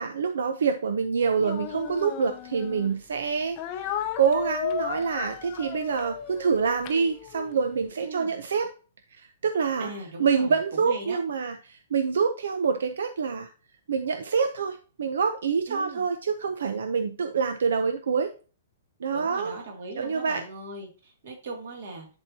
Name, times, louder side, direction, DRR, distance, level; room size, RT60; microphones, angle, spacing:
voice 1, 0.0-8.7 9.1-9.9 10.2-13.5 13.9-18.3 19.0-19.5 19.9-20.4, right 6 dB, 85° right, 7 dB, 0.7 m, -26 dB
Speech, 1.4-2.9 3.6-7.6, left 10 dB, 25° left, 0.6 m, -35 dB
voice 2, 8.0-8.3 9.8-11.2 15.7-16.0 19.1-22.1, right 3 dB, 50° right, 1 dB, 2.4 m, -39 dB
10.5 x 4.5 x 2.8 m, 0.36 s
hypercardioid pair, 175°, 0 cm